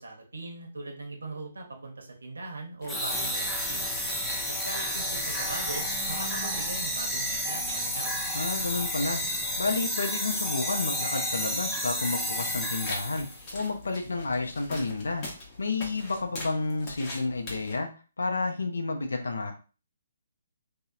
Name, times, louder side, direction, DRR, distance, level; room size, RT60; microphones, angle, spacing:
voice 1, 0.0-3.8 4.5-8.1, right 2 dB, 90° right, 1 dB, 0.8 m, -40 dB
sound 1, 2.8-17.8, left 2 dB, 30° left, 0.8 m, -45 dB
sound 2, 2.9-13.4, equal, 5° left, 0.3 m, -31 dB
sound 3, 3.4-9.9, right 1 dB, 45° right, 0.6 m, -46 dB
voice 2, 8.3-9.2 9.6-13.3 13.5-15.2 15.6-17.9 18.2-19.5, left 3 dB, 85° left, 4 dB, 0.5 m, -30 dB
2.7 x 2.1 x 2.3 m, 0.35 s
hypercardioid pair, 150°, 0 cm